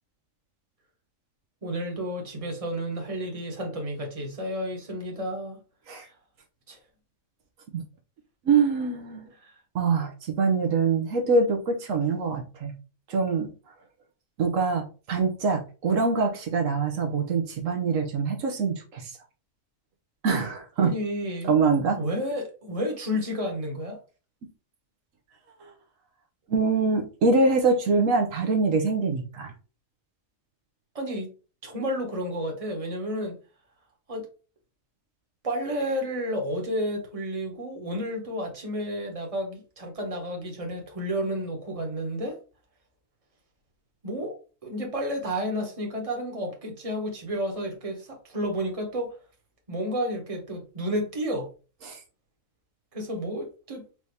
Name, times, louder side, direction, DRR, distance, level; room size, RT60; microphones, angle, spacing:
voice 1, 1.6-5.6 6.7-6.8 9.3-9.5 20.8-21.7 21.9-24.0 30.9-31.3 31.6-33.4 34.1-34.3 35.4-42.4 44.0-49.2 49.7-51.5 52.9-53.8, equal, 25° right, 1.2 m, -31 dB
voice 2, 8.4-9.3 9.7-12.7 13.1-13.5 14.4-19.1 20.2-20.9 21.5-22.0 25.6-25.7 26.5-29.5 51.9-52.0, right 4 dB, 75° right, 1.1 m, -24 dB
4.7 x 2.7 x 3.3 m
omnidirectional pair, 1.4 m